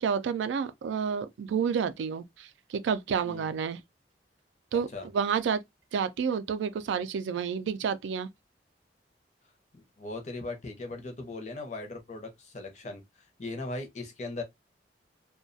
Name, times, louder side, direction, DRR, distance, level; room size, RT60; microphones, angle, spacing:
voice 1, 0.0-3.8 4.7-5.6 5.9-8.3, right 6 dB, 80° right, 0.3 m, -30 dB
voice 2, 9.7-14.4, left 2 dB, 40° left, 0.6 m, -39 dB
2.3 x 2.2 x 2.5 m
head